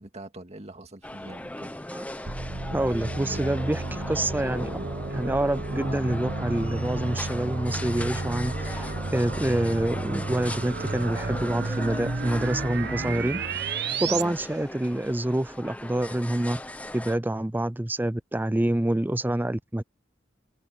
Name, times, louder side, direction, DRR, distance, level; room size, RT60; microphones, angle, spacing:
voice 1, 0.0-1.7 4.8-4.9 14.1-14.3, right 1 dB, 35° right, 2.1 m, -42 dB
sound 1, 1.0-17.2, left 1 dB, 10° left, 1.0 m, -39 dB
voice 2, 1.9-2.3 2.7-4.8 5.1-16.6 16.9-19.8, right 1 dB, 10° right, 0.5 m, -27 dB
sound 2, 2.3-14.2, right 3 dB, 60° right, 1.4 m, -32 dB
head